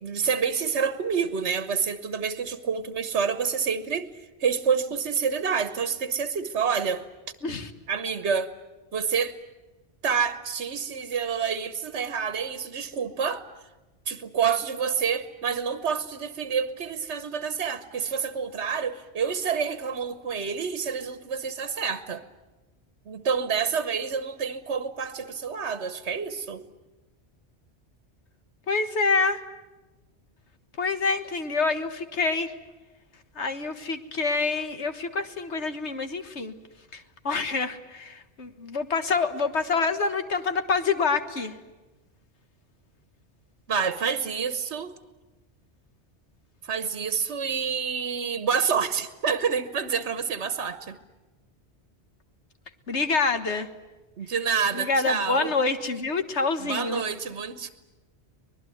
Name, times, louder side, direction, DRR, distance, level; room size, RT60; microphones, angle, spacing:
voice 1, 0.0-4.1 4.4-7.0 7.9-8.5 8.9-9.4 10.0-13.4 14.1-22.2 23.1-26.6 43.7-44.9 46.7-51.0 54.2-55.5 56.6-57.7, right 6 dB, 80° right, 11 dB, 1.4 m, -28 dB
voice 2, 28.7-29.4 30.8-32.5 33.4-36.5 36.9-41.6 52.9-53.7 54.7-57.0, left 4 dB, 85° left, 8 dB, 1.8 m, -26 dB
25.0 x 20.5 x 9.3 m, 1.1 s
omnidirectional pair, 1.1 m